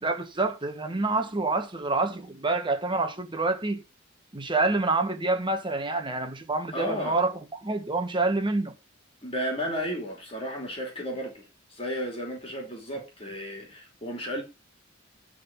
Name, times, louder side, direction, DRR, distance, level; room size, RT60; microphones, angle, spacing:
voice 1, 0.0-3.8 4.3-7.3 7.6-8.7, right 3 dB, 25° right, 1.4 m, -27 dB
voice 2, 6.7-7.2 9.2-14.4, equal, 30° left, 2.8 m, -33 dB
11.5 x 4.1 x 5.7 m
head